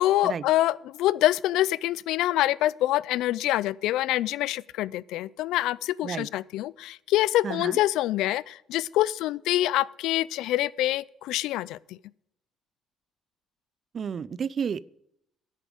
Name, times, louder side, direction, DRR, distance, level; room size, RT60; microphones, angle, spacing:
voice 1, 0.0-11.8, left 15 dB, 90° left, 0.3 m, -25 dB
voice 2, 7.4-7.8 13.9-15.0, right 7 dB, 40° right, 0.4 m, -31 dB
10.0 x 9.8 x 5.0 m
cardioid pair, 125°, 0 cm